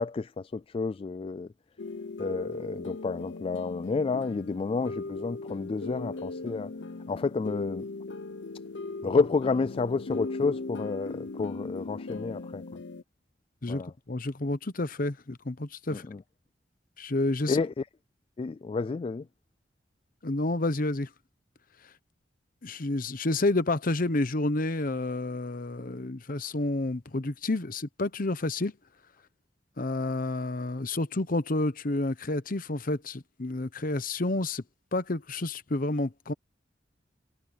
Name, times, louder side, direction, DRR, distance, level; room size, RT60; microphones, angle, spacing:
voice 1, 0.0-1.5 2.2-6.7 7.1-7.8 9.0-12.6 13.7-13.9 15.9-16.2 17.5-17.9 18.4-19.3, left 4 dB, 30° left, 0.3 m, -30 dB
sound 1, 1.8-13.0, left 3 dB, 70° left, 0.7 m, -38 dB
voice 2, 14.1-16.1 17.0-17.6 20.2-21.1 22.6-28.7 29.8-34.6 34.9-36.3, left 2 dB, 50° left, 1.0 m, -29 dB
head